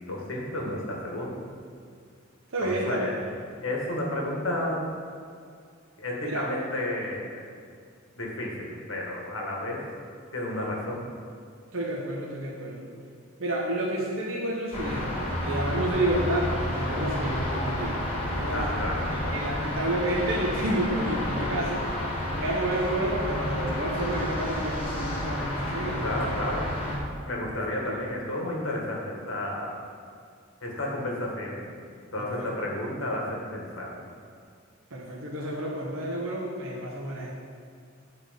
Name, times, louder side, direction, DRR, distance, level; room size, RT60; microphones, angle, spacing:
voice 1, 0.1-1.4 2.6-3.2 3.6-4.8 6.0-7.4 8.2-9.8 10.3-11.1 18.5-19.3 26.0-26.7 27.3-29.8 30.6-31.7 32.1-34.0, left 1 dB, 75° left, -2 dB, 1.7 m, -32 dB
voice 2, 2.5-3.1 6.2-6.4 11.7-12.9 13.4-18.0 18.3-18.8 19.3-21.8 22.4-26.4 27.8-28.0 32.2-32.5 34.9-37.3, right 1 dB, 75° right, -4 dB, 1.1 m, -30 dB
sound 1, 14.7-27.0, left 1 dB, 30° left, 1.6 m, -30 dB
9.7 x 4.4 x 5.2 m, 2.2 s
head